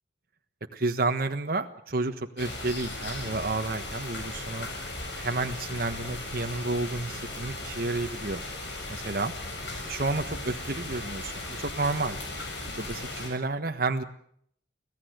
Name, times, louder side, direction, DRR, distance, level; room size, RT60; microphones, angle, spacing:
voice 1, 0.7-4.7 5.1-8.4 8.9-9.3 9.8-12.2 12.7-14.0, right 3 dB, 55° right, 6 dB, 1.4 m, -30 dB
sound 1, 2.4-13.3, left 2 dB, 75° left, 6.9 m, -37 dB
25.0 x 16.5 x 8.0 m, 0.67 s
head